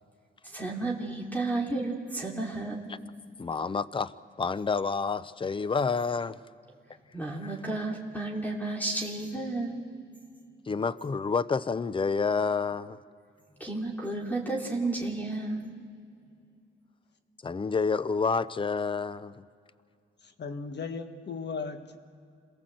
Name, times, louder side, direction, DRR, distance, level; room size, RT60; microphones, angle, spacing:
voice 1, 0.4-2.9 7.1-9.8 13.6-15.8, right 2 dB, 10° left, 2.9 m, -32 dB
voice 2, 3.4-6.4 7.4-7.6 10.6-13.0 17.4-19.5, left 5 dB, 25° left, 0.6 m, -29 dB
voice 3, 20.2-22.0, left 5 dB, 55° left, 1.6 m, -37 dB
27.0 x 18.0 x 7.8 m
cardioid pair, 90°, 20 cm